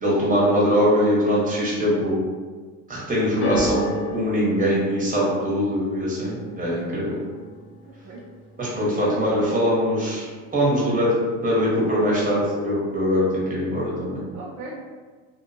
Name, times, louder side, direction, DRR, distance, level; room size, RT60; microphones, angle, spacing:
voice 1, 0.0-2.2 2.9-3.8 4.1-7.2 8.6-10.3 10.5-11.1 11.4-14.2, equal, 20° right, -6 dB, 1.1 m, -22 dB
sound 1, 3.4-9.7 9.9-10.6 11.3-11.4, equal, 70° left, 0.8 m, -33 dB
voice 2, 8.8-9.2 10.8-11.0 14.3-14.8, right 3 dB, 40° right, -5 dB, 0.6 m, -38 dB
2.5 x 2.2 x 2.6 m, 1.5 s
hypercardioid pair, 80°, 43 cm